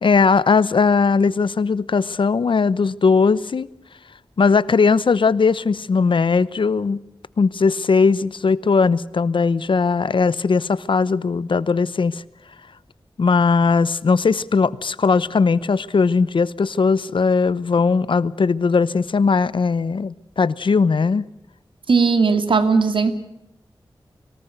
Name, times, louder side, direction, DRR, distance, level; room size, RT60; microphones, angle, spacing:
voice 1, 0.0-3.7 4.4-7.0 7.4-12.2 13.2-21.2, left 4 dB, 70° left, 18 dB, 0.8 m, -18 dB
voice 2, 21.9-23.1, right 4 dB, 75° right, 9 dB, 2.3 m, -17 dB
25.0 x 18.5 x 8.0 m, 0.86 s
wide cardioid pair, 80°, 9 cm